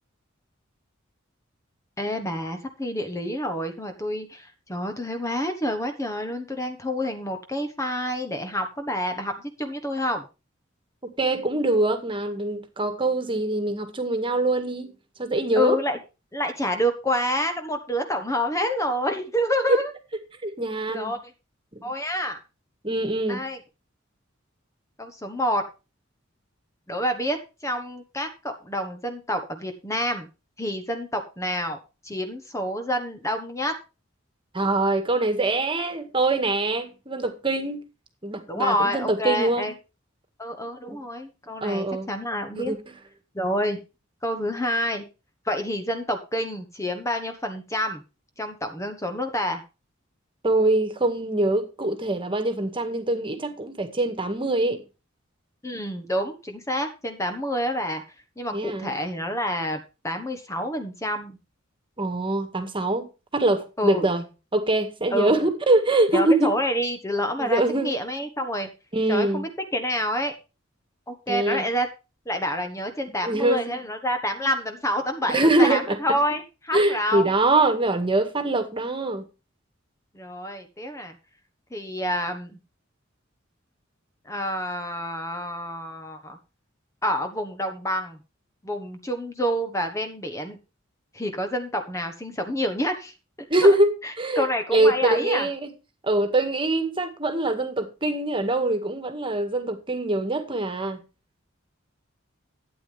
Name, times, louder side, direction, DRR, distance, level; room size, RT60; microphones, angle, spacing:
voice 1, 2.0-9.3 9.6-10.2 15.6-16.0 16.3-19.9 20.9-21.3 21.8-22.4 23.3-23.6 25.0-25.6 26.9-27.4 27.6-30.3 30.6-31.8 32.0-33.7 38.5-39.7 40.4-42.8 43.3-43.8 44.2-45.0 45.4-48.0 48.4-49.6 55.6-58.0 58.4-61.4 63.8-64.1 65.1-65.5 66.1-68.7 69.1-70.3 71.1-71.9 72.3-77.3 80.1-81.1 81.7-82.6 84.2-86.4 87.0-88.2 88.6-90.6 91.1-93.1 93.6-93.7 94.0-95.5, equal, 15° left, 1.2 m, -28 dB
voice 2, 11.2-14.9 15.2-15.8 20.4-21.1 21.7-21.9 22.8-23.4 34.5-37.8 38.2-39.7 40.9-41.0 41.6-42.1 42.6-42.8 50.4-54.8 58.5-58.9 62.0-63.1 63.3-64.2 64.5-66.5 67.4-68.0 68.9-69.4 71.3-71.7 73.2-73.8 75.3-76.0 76.7-79.2 93.5-93.9 94.2-94.5 94.7-95.7 96.0-101.0, right 2 dB, 25° right, 1.8 m, -23 dB
12.5 x 9.3 x 3.4 m
head